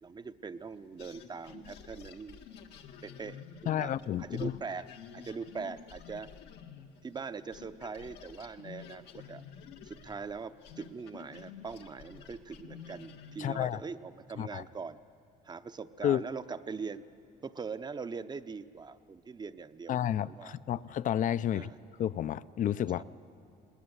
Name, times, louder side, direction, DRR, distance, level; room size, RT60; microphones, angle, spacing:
voice 1, 0.0-2.4 3.0-3.9 4.2-4.9 5.1-6.3 7.0-9.4 9.8-15.0 15.4-17.0 17.4-20.0 20.3-20.6 21.5-21.8 23.0-23.1, right 5 dB, 25° right, 12 dB, 0.7 m, -42 dB
sound 1, 1.0-7.3 7.5-13.7, left 7 dB, 85° left, 1.7 m, -50 dB
voice 2, 3.7-4.6 13.4-13.8 14.4-14.6 16.0-16.2 19.9-21.7 22.0-23.0, left 10 dB, 50° left, 17 dB, 0.5 m, -31 dB
20.0 x 19.5 x 9.7 m, 2.5 s
cardioid pair, 110°, 17 cm